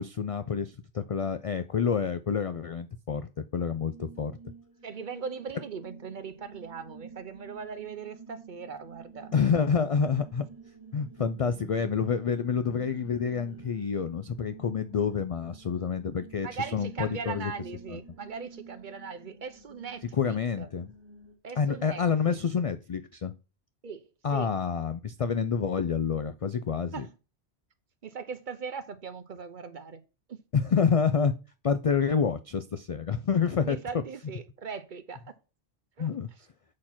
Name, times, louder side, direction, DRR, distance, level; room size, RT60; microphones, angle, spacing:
voice 1, 0.0-4.3 9.3-10.5 10.9-17.5 17.9-18.0 20.1-20.9 21.6-23.3 24.2-27.1 30.5-31.3 31.6-33.8 36.0-36.3, left 6 dB, 60° left, 0.3 m, -28 dB
sound 1, 3.8-21.4, right 4 dB, 25° right, 1.7 m, -50 dB
voice 2, 4.8-9.3 16.4-20.7 21.4-22.4 23.8-24.1 24.3-24.5 26.9-27.1 28.0-30.0 30.3-30.4 33.6-35.2 36.0-36.1, right 5 dB, 50° right, 0.8 m, -39 dB
7.3 x 4.3 x 5.8 m
omnidirectional pair, 1.1 m